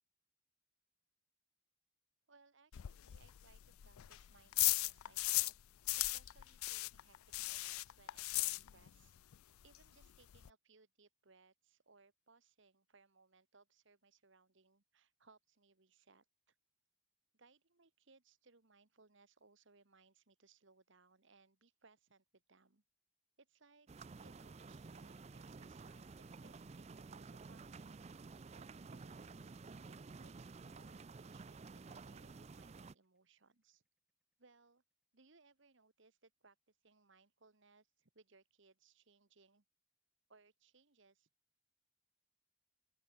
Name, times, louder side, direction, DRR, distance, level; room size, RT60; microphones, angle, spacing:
voice 1, 2.3-5.5 5.9-9.2 9.6-16.6 17.4-22.8 23.4-23.9 24.2-26.1 26.4-27.9 28.5-29.5 29.9-33.8 34.4-34.8 35.1-39.6 40.3-41.3, right 4 dB, 60° right, 1.4 m, -68 dB
sound 1, 2.7-5.6 5.9-9.1 9.3-9.4 9.8-9.9 10.0-10.5, left 20 dB, 85° left, 0.4 m, -37 dB
sound 2, 23.9-32.9, right 4 dB, 30° right, 0.4 m, -53 dB
sound 3, 25.7-35.2, equal, 5° right, 4.6 m, -80 dB
open air
head